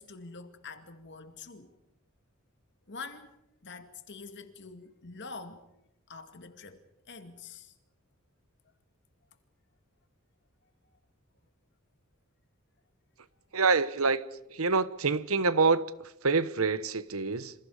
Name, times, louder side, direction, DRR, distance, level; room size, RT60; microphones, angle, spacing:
voice 1, 0.0-1.7 2.9-3.3 3.6-5.6 6.1-7.7, left 4 dB, 55° left, 2.3 m, -45 dB
voice 2, 13.5-14.2 14.5-17.5, right 4 dB, 80° right, 1.1 m, -26 dB
28.0 x 27.0 x 5.0 m
head